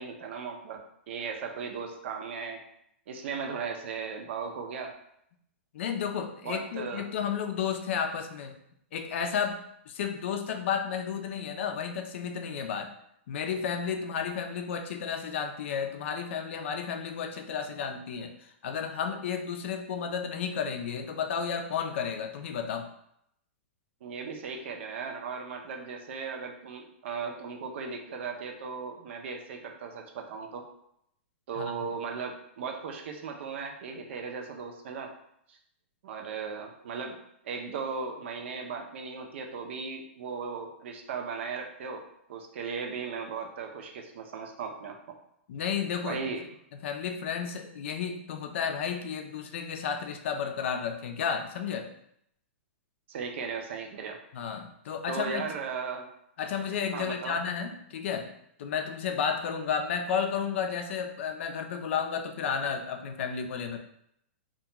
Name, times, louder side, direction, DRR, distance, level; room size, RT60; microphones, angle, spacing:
voice 1, 0.0-2.6 3.1-4.9 6.4-7.0 24.0-30.6 31.5-35.1 35.5-35.6 36.0-37.2 37.4-42.0 42.3-45.2 46.0-46.4 53.1-54.2 55.1-56.0 56.9-57.4, right 5 dB, 65° right, 3 dB, 0.5 m, -37 dB
voice 2, 5.7-8.6 8.9-9.6 9.9-12.9 13.3-22.9 31.6-31.7 45.5-46.2 46.8-51.9 54.3-55.5 56.4-63.8, left 7 dB, 65° left, 5 dB, 0.4 m, -32 dB
2.3 x 2.2 x 2.9 m, 0.74 s
hypercardioid pair, 135°, 7 cm